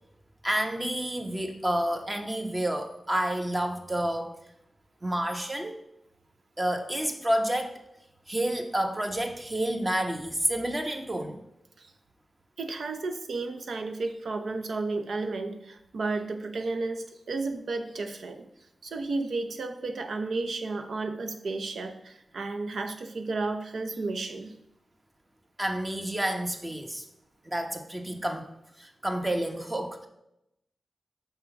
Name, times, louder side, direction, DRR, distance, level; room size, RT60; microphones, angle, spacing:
voice 1, 0.4-4.3 5.0-5.8 6.6-7.8 8.3-11.4 25.6-27.0 27.4-28.5 28.8-30.1, right 1 dB, 20° right, 4 dB, 0.9 m, -29 dB
voice 2, 12.6-18.5 18.8-24.6, right 3 dB, 80° right, 7 dB, 0.6 m, -33 dB
5.6 x 3.8 x 5.7 m, 0.82 s
cardioid pair, 60°, 0 cm